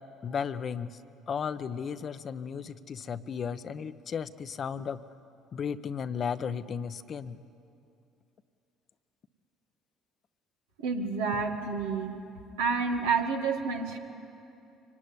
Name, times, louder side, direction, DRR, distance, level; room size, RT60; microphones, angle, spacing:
voice 1, 0.2-1.0 1.3-5.0 5.5-7.4, left 7 dB, 45° left, 12 dB, 0.9 m, -34 dB
voice 2, 10.8-12.2 12.6-14.0, right 5 dB, 85° right, 2 dB, 2.1 m, -29 dB
24.5 x 18.0 x 9.8 m, 2.7 s
hypercardioid pair, 60°, 0 cm